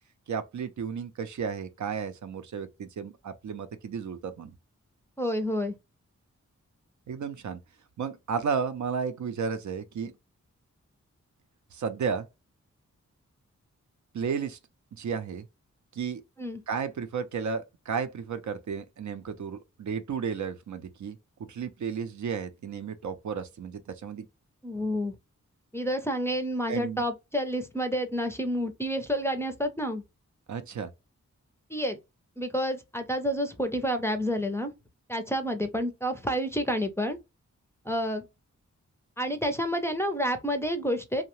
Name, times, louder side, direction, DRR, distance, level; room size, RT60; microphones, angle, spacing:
voice 1, 0.3-4.5 7.1-7.6 8.0-10.1 11.7-12.3 14.1-14.6 14.9-15.5 15.9-16.2 16.7-21.2 21.5-24.3 26.7-27.0 30.5-30.9, right 6 dB, 70° right, 0.5 m, -33 dB
voice 2, 5.2-5.7 16.4-16.6 24.6-25.1 25.7-30.0 31.7-32.0 32.4-34.7 35.1-37.2 37.9-38.2 39.2-41.2, equal, 10° left, 0.4 m, -29 dB
2.7 x 2.1 x 2.9 m
wide cardioid pair, 105°, 30 cm